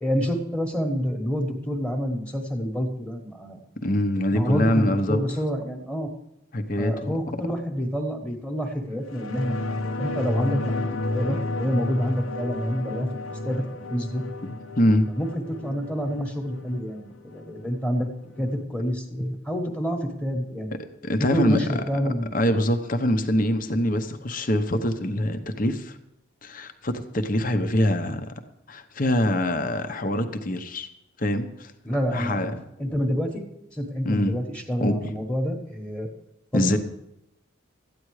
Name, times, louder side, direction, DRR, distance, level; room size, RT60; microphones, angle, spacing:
voice 1, 0.0-3.6 4.3-6.1 6.8-10.8 11.1-13.1 13.4-13.6 13.9-14.2 15.1-18.1 18.4-20.8 21.2-22.3 31.8-32.5 32.8-36.1 36.5-36.8, equal, 5° left, 3 dB, 1.3 m, -28 dB
voice 2, 3.8-5.2 6.5-7.1 10.5-10.7 14.4-15.1 21.0-21.8 22.3-26.0 26.4-28.3 28.7-30.9 31.2-31.7 32.1-32.6 34.0-34.4 34.8-35.0 36.5-36.8, left 1 dB, 40° left, 7 dB, 0.9 m, -24 dB
sound 1, 9.1-18.1 18.4-18.5, left 2 dB, 80° left, 0.9 m, -32 dB
13.5 x 9.5 x 4.8 m, 0.84 s
head